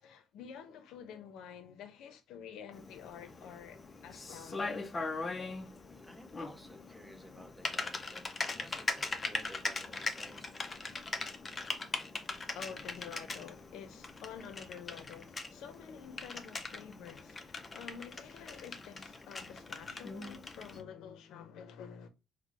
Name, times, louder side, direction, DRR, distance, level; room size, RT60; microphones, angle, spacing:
voice 1, 0.0-4.8 7.3-7.6 9.8-10.0 10.3-11.1 12.4-22.1, left 7 dB, 85° left, 0.5 m, -49 dB
Typing, 2.7-20.8, left 3 dB, 25° left, 0.5 m, -41 dB
voice 2, 5.8-10.6, equal, 5° right, 0.8 m, -54 dB
4.4 x 2.1 x 2.4 m
cardioid pair, 115°, 0 cm